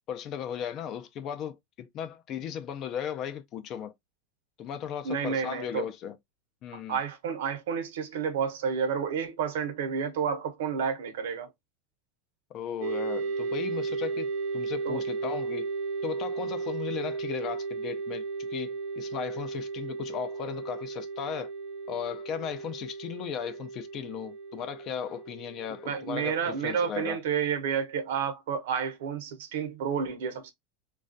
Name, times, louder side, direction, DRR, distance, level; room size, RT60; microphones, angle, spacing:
voice 1, 0.1-3.9 4.6-6.2 6.6-7.0 12.5-15.7 16.0-18.2 18.5-21.5 21.9-27.2, left 8 dB, 35° left, 0.5 m, -36 dB
voice 2, 5.0-5.8 6.9-11.5 14.8-15.0 25.8-30.5, right 7 dB, 85° right, 0.8 m, -30 dB
sound 1, 12.8-26.7, right 4 dB, 60° right, 0.5 m, -35 dB
3.1 x 2.4 x 2.5 m
supercardioid pair, 155°, 0 cm